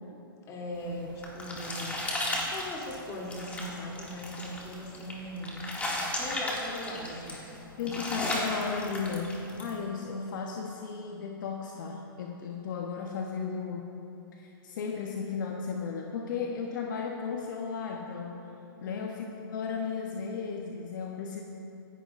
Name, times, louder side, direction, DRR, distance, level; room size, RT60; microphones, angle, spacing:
voice 1, 0.5-2.0 2.5-5.6 6.0-7.4 7.8-8.1 18.8-19.1, left 1 dB, 25° left, -2 dB, 2.9 m, -39 dB
sound 1, 0.8-9.7, left 1 dB, 10° left, 2.2 m, -35 dB
voice 2, 7.8-14.0 14.3-18.5 18.8-21.4, left 5 dB, 55° left, 1 dB, 1.0 m, -35 dB
25.0 x 11.0 x 2.6 m, 2.9 s
hypercardioid pair, 125°, 12 cm